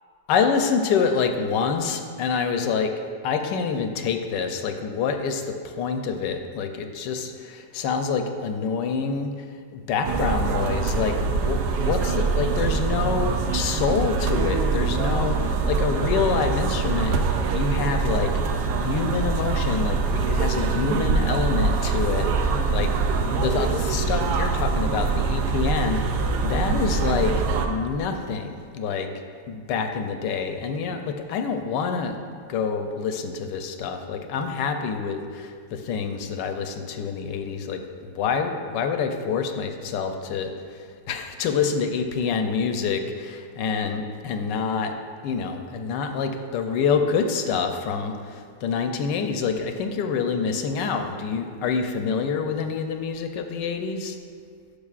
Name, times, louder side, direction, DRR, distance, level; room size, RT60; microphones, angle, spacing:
voice 1, 0.3-2.9 3.2-9.3 9.7-17.2 17.5-18.3 18.8-22.9 23.2-27.3 27.6-29.1 29.5-32.2 32.5-40.5 41.1-44.9 45.2-54.2, left 5 dB, 75° left, 6 dB, 1.2 m, -27 dB
sound 1, 10.0-27.7, right 4 dB, 70° right, 1.1 m, -24 dB
10.0 x 6.5 x 2.4 m, 2.1 s
omnidirectional pair, 2.0 m